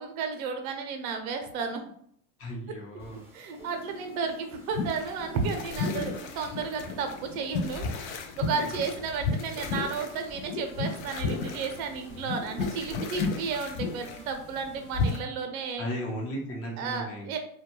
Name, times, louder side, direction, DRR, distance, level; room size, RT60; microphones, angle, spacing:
voice 1, 0.0-1.8 3.3-7.9 8.4-15.9 16.8-17.4, right 5 dB, 70° right, 6 dB, 0.7 m, -33 dB
voice 2, 2.4-3.2 8.5-8.7 15.8-17.4, equal, 30° left, -2 dB, 0.9 m, -36 dB
sound 1, 2.8-15.6, right 1 dB, 5° right, 0.6 m, -49 dB
sound 2, 4.7-15.2, left 4 dB, 50° left, 0.5 m, -33 dB
2.2 x 2.2 x 3.0 m, 0.66 s
supercardioid pair, 125°, 43 cm